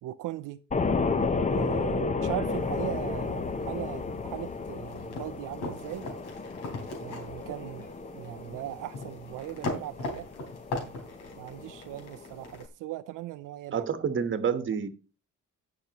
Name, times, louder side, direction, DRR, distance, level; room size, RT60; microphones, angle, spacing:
voice 1, 0.0-0.6 1.5-6.1 7.0-10.3 11.4-13.9, right 14 dB, 80° right, 0.5 m, -38 dB
sound 1, 0.7-12.7, left 4 dB, 25° left, 0.7 m, -33 dB
sound 2, 2.5-12.7, left 2 dB, 90° left, 3.4 m, -41 dB
voice 2, 13.7-14.9, right 7 dB, 40° right, 1.2 m, -28 dB
17.0 x 5.9 x 2.9 m
cardioid pair, 125°, 31 cm